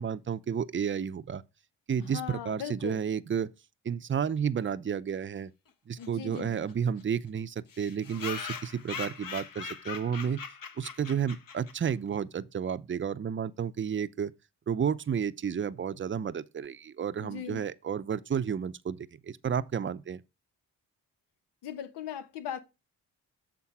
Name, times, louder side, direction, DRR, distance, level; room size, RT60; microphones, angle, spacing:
voice 1, 0.0-1.4 1.9-3.5 3.8-5.5 5.9-10.4 10.8-14.3 14.7-20.2, right 7 dB, 30° right, 0.6 m, -31 dB
voice 2, 2.0-3.0 6.0-6.7 17.2-17.6 21.6-22.6, left 9 dB, 85° left, 1.0 m, -39 dB
sound 1, 6.0-6.1 6.3-6.4 6.7-6.8 7.0-7.1 7.7-11.9, left 6 dB, 55° left, 1.1 m, -40 dB
7.2 x 3.7 x 4.8 m
supercardioid pair, 50°, 39 cm